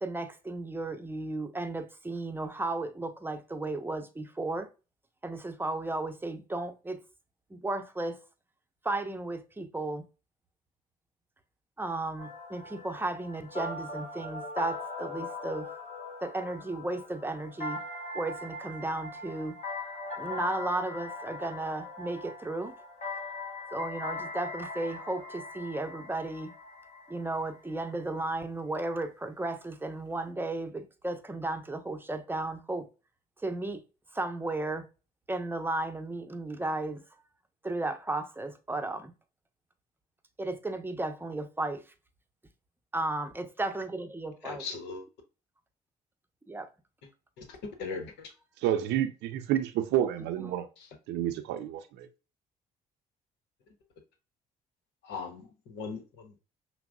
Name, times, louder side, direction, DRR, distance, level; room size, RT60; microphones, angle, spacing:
voice 1, 0.0-4.7 5.2-7.0 7.5-8.2 8.8-10.0 11.8-15.7 16.2-17.8 18.1-19.6 20.2-22.7 23.7-26.5 27.1-32.9 33.4-33.8 34.1-34.9 35.3-37.0 37.6-39.1 40.4-41.8 42.9-44.7 46.5-46.7 50.4-50.5, right 2 dB, 10° right, 0.7 m, -34 dB
sound 1, 12.2-27.9, left 3 dB, 40° left, 1.4 m, -40 dB
voice 2, 44.4-45.0 47.4-48.3 50.8-50.9 55.0-56.4, left 4 dB, 75° left, 0.9 m, -39 dB
voice 3, 48.6-50.7 51.1-52.1, right 11 dB, 70° right, 0.5 m, -29 dB
5.8 x 2.1 x 2.3 m
hypercardioid pair, 55°, 18 cm